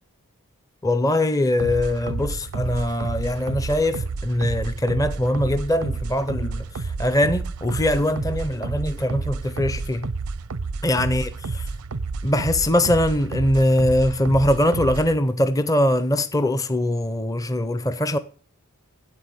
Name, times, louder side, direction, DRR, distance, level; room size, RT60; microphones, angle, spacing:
voice 1, 0.8-10.1 10.8-11.7 12.2-18.2, left 1 dB, 15° left, 0.5 m, -22 dB
sound 1, 1.6-15.2, right 4 dB, 85° right, 0.6 m, -30 dB
12.0 x 8.6 x 8.1 m
head